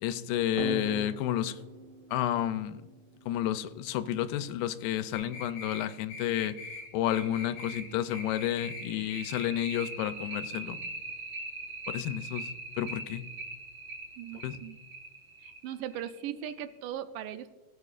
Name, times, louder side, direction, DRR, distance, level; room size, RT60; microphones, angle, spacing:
voice 1, 0.0-1.6 2.1-2.8 3.3-6.6 6.9-10.8 11.9-12.5 12.8-13.3 14.4-14.5, left 12 dB, 90° left, 12 dB, 2.4 m, -31 dB
sound 1, 0.6-3.7 5.2-5.3 5.7-5.8 6.2-6.3 6.7-16.8, right 3 dB, 50° right, 3.0 m, -41 dB
sound 2, 5.1-5.8 6.1-6.8 7.1-7.8 8.1-8.8 9.1-9.8, left 3 dB, 30° left, 2.9 m, -42 dB
voice 2, 14.2-14.8 15.4-17.6, right 10 dB, 80° right, 10 dB, 2.1 m, -39 dB
17.5 x 8.2 x 2.4 m, 1.2 s
omnidirectional pair, 4.0 m